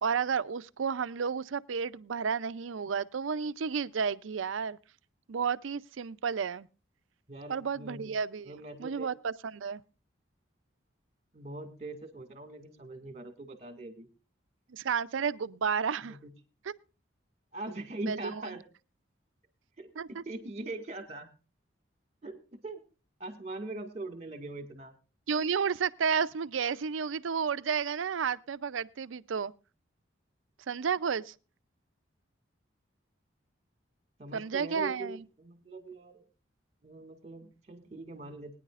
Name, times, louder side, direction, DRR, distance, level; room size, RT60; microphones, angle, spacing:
voice 1, 0.0-4.8 5.3-6.7 7.5-8.5 8.8-9.8 14.7-16.2 16.7-16.8 18.1-18.5 20.0-20.2 25.3-29.5 30.7-31.3 34.3-35.2, right 6 dB, 85° right, 0.5 m, -32 dB
voice 2, 7.3-8.1 8.4-9.1 11.3-14.1 16.1-16.3 17.5-18.7 19.8-21.3 22.2-22.8 23.2-24.9 34.2-36.2 36.8-38.6, right 2 dB, 35° right, 2.0 m, -42 dB
21.5 x 10.0 x 2.5 m
head